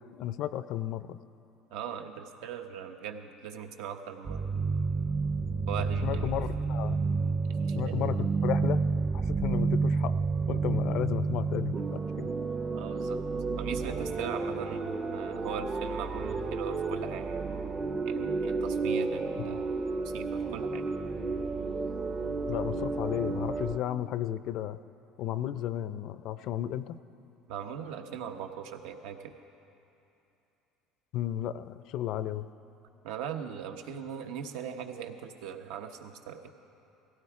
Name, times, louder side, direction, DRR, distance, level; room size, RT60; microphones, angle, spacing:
voice 1, 0.1-1.2 6.0-7.0 7.7-8.8 9.1-10.1 10.5-12.3 22.5-24.8 25.2-27.0 31.1-32.5, left 12 dB, 55° left, 14 dB, 0.4 m, -33 dB
voice 2, 1.7-4.4 5.7-6.3 7.5-8.1 12.7-13.2 13.6-17.4 18.0-19.8 20.1-20.9 27.5-29.3 33.0-36.5, right 8 dB, 80° right, 5 dB, 1.0 m, -40 dB
sound 1, 4.2-23.8, right 4 dB, 25° right, 0.6 m, -31 dB
17.0 x 16.0 x 4.8 m, 2.8 s
cardioid pair, 145°, 0 cm